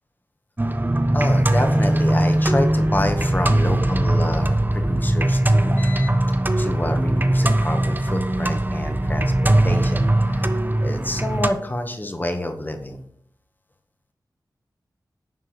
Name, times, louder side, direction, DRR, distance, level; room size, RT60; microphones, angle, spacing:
sound 1, 0.6-11.5, right 1 dB, 25° right, 1.1 m, -20 dB
voice 1, 1.1-6.1 6.6-13.0, left 1 dB, 25° left, 5 dB, 1.7 m, -28 dB
11.0 x 4.8 x 7.8 m, 0.65 s
cardioid pair, 50°, 7 cm